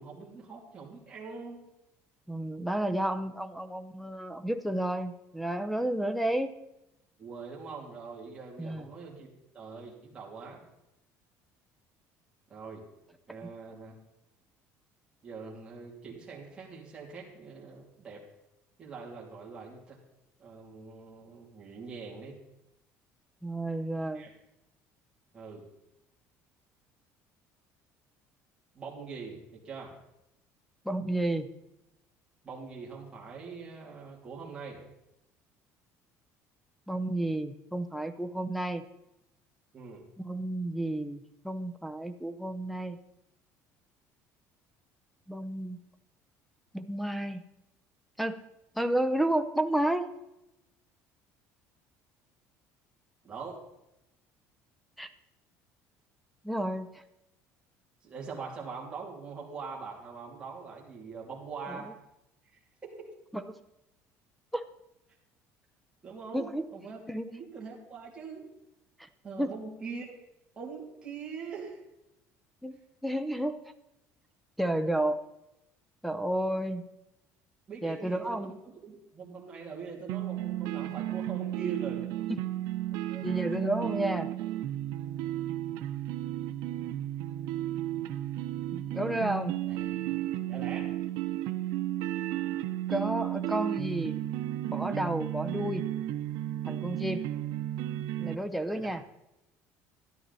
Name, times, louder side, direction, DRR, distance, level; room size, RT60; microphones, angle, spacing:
voice 1, 0.0-1.6 7.2-10.6 12.5-12.8 13.3-13.9 15.2-18.3 18.8-20.0 20.4-22.4 24.1-24.3 25.3-25.7 28.7-30.0 32.4-34.8 39.7-40.0 53.2-53.6 58.0-61.9 62.5-63.1 66.0-66.5 66.7-67.0 67.3-68.5 69.2-70.2 70.6-71.8 77.7-82.1 83.0-83.4 83.8-83.9 89.6-90.2 90.5-90.9 98.7-98.9, right 5 dB, 15° right, -4 dB, 2.8 m, -43 dB
voice 2, 2.3-6.5 8.6-8.9 23.4-24.3 30.8-31.5 36.9-38.8 40.2-43.0 45.3-45.8 46.7-47.4 48.2-48.4 48.8-50.1 55.0-55.1 56.4-57.0 61.7-61.8 63.3-63.6 64.5-64.7 66.3-66.7 67.1-67.3 69.4-69.5 72.6-73.6 74.6-75.2 76.0-76.9 77.8-78.5 82.3-82.4 83.2-84.3 88.7-89.5 92.9-94.2 94.6-95.9 96.7-97.3 98.2-99.0, right 1 dB, ahead, 11 dB, 0.6 m, -31 dB
sound 1, 80.1-98.4, right 13 dB, 80° right, 0.8 m, -33 dB
13.0 x 11.0 x 4.1 m, 0.89 s
cardioid pair, 175°, 6 cm